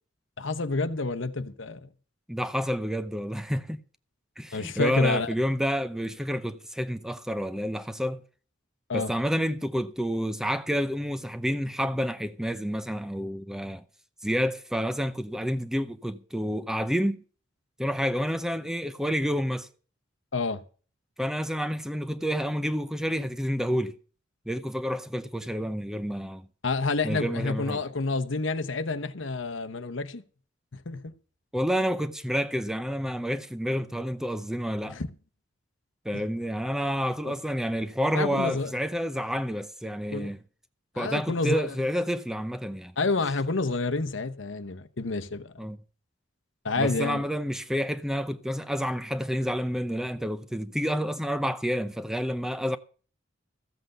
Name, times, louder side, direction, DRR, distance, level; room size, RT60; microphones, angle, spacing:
voice 1, 0.4-1.9 4.5-5.3 8.9-9.1 20.3-20.6 26.6-30.2 30.7-31.1 34.8-35.1 37.2-37.3 38.1-38.7 40.1-40.3 40.9-41.7 43.0-45.6 46.6-47.2, left 3 dB, 65° left, 1.0 m, -29 dB
voice 2, 2.3-3.8 4.4-8.2 8.9-13.8 14.2-17.2 17.8-19.7 21.2-24.0 24.5-26.5 27.0-27.8 31.5-35.0 36.0-40.4 41.0-42.9 45.6-45.8 46.8-52.8, equal, 5° right, 0.6 m, -29 dB
14.5 x 7.8 x 6.6 m
head